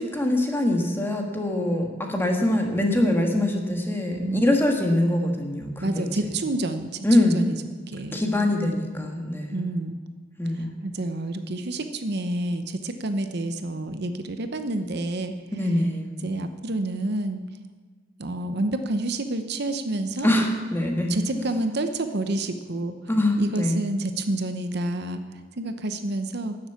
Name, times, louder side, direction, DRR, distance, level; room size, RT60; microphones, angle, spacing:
voice 1, 0.0-6.1 7.0-7.4 8.1-9.6 10.4-10.7 15.5-16.1 20.2-21.1 23.1-23.9, left 1 dB, 10° left, 2 dB, 1.6 m, -23 dB
voice 2, 5.8-7.6 7.9-8.2 9.5-10.0 10.6-15.4 16.2-17.4 18.2-20.3 21.1-22.9 23.4-26.6, right 2 dB, 55° right, 8 dB, 0.8 m, -29 dB
12.5 x 7.3 x 8.5 m, 1.4 s
head